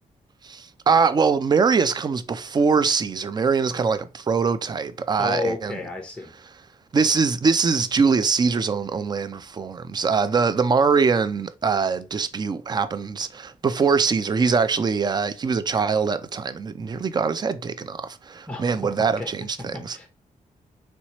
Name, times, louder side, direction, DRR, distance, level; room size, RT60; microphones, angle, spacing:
voice 1, 0.4-5.8 6.9-20.0, right 5 dB, 30° right, 0.3 m, -23 dB
voice 2, 5.2-6.3 18.5-18.9 19.2-19.3 19.7-20.1, left 3 dB, 10° left, 0.7 m, -31 dB
3.1 x 2.9 x 2.9 m
wide cardioid pair, 115°, 14 cm